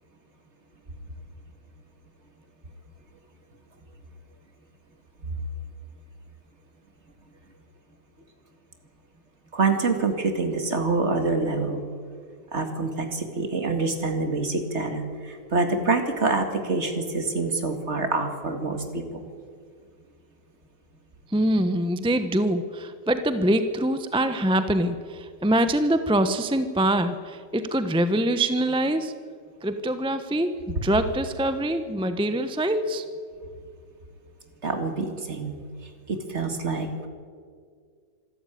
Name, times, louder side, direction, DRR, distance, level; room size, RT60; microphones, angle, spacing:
voice 1, 9.5-11.8 12.5-19.2 34.6-35.6 36.1-37.1, right 3 dB, 40° right, 6 dB, 2.3 m, -26 dB
voice 2, 21.3-29.1 29.6-33.0, right 1 dB, 5° right, 9 dB, 0.6 m, -24 dB
26.0 x 13.0 x 9.2 m, 2.1 s
omnidirectional pair, 1.9 m